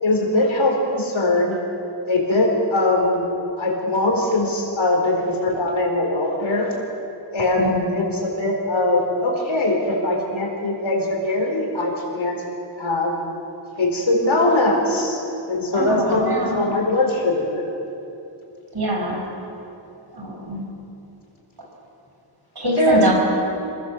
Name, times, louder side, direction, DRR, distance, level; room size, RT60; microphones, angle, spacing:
voice 1, 0.0-1.6 2.1-3.2 3.6-6.7 7.3-12.4 12.8-13.2 13.8-15.2 15.5-17.5 22.8-23.1, left 2 dB, 75° left, -1 dB, 4.5 m, -21 dB
voice 2, 7.6-7.9 15.7-16.6 18.7-19.2 20.1-20.6 22.6-23.1, right 1 dB, 55° right, -1 dB, 5.2 m, -24 dB
26.5 x 17.0 x 7.4 m, 2.9 s
wide cardioid pair, 105°, 48 cm